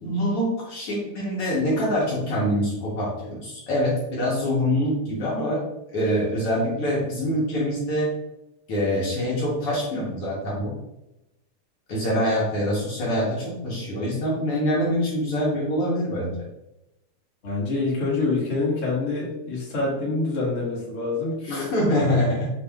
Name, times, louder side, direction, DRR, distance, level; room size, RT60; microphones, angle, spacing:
voice 1, 0.0-5.6 5.9-8.1 8.7-10.7 11.9-16.3 21.4-22.5, equal, 60° left, -5 dB, 1.7 m, -25 dB
voice 2, 17.4-21.7, left 3 dB, 45° left, -5 dB, 1.1 m, -26 dB
6.5 x 3.2 x 2.3 m, 0.91 s
omnidirectional pair, 3.4 m